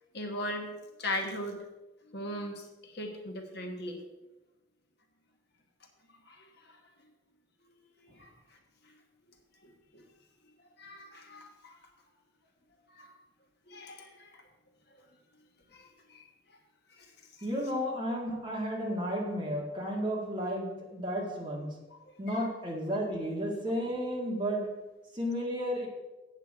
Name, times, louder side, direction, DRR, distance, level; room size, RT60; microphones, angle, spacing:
voice 1, 0.1-0.7 1.0-1.6 2.0-4.0 6.3-6.8 8.0-8.3 8.8-8.9 9.6-10.1 10.8-11.8 12.9-13.2 13.7-14.4 15.7-16.3 16.9-17.1 22.3-22.5, left 1 dB, 55° left, 3 dB, 1.3 m, -39 dB
voice 2, 17.4-21.8 22.2-24.8 25.1-25.9, equal, 25° right, -2 dB, 1.8 m, -33 dB
8.1 x 7.9 x 4.8 m, 1.1 s
head